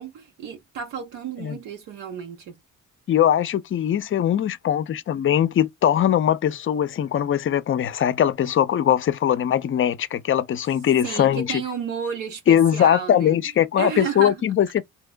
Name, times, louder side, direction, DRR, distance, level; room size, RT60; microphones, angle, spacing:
voice 1, 0.0-2.6 11.0-13.4 13.7-14.4, right 6 dB, 85° right, 1.1 m, -32 dB
voice 2, 3.1-11.6 12.5-14.8, left 10 dB, 45° left, 0.5 m, -21 dB
3.6 x 2.9 x 2.3 m
cardioid pair, 90°, 30 cm